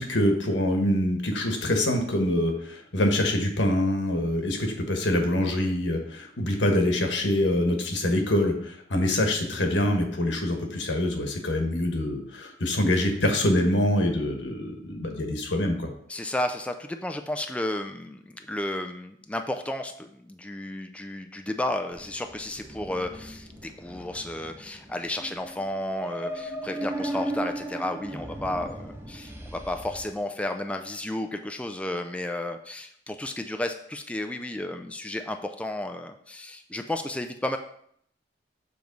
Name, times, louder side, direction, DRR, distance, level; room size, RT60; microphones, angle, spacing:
voice 1, 0.0-15.9, left 1 dB, 85° left, 3 dB, 1.3 m, -25 dB
voice 2, 16.1-37.6, left 1 dB, 5° left, 5 dB, 0.3 m, -32 dB
sound 1, 21.9-30.1, right 1 dB, 15° right, 0.7 m, -37 dB
7.0 x 3.1 x 5.2 m, 0.67 s
head